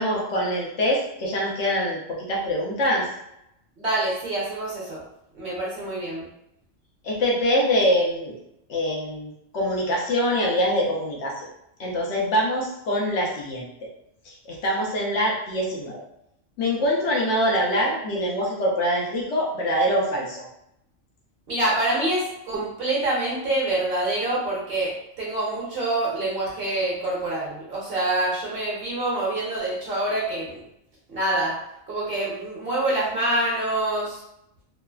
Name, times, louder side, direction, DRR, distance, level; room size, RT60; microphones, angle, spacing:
voice 1, 0.0-3.1 7.0-8.4 8.7-11.5 11.8-13.9 14.2-16.0 16.6-20.4, equal, 70° left, -3 dB, 0.9 m, -24 dB
voice 2, 3.8-5.0 5.3-6.3 21.5-30.6 31.1-31.6 31.9-34.2, right 2 dB, 50° right, -6 dB, 1.0 m, -26 dB
3.1 x 2.0 x 2.3 m, 0.81 s
omnidirectional pair, 1.3 m